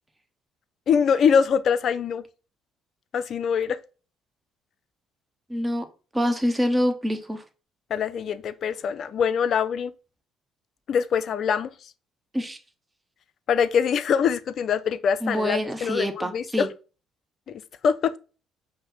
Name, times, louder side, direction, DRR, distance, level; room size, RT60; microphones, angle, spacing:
voice 1, 0.9-2.2 3.1-3.8 7.9-9.9 10.9-11.7 13.5-16.7 17.5-18.2, left 7 dB, 55° left, 0.3 m, -23 dB
voice 2, 5.5-5.9 6.1-7.4 12.3-12.6 15.2-16.7, equal, 15° right, 0.9 m, -26 dB
5.5 x 2.0 x 3.9 m
hypercardioid pair, 60°, 0 cm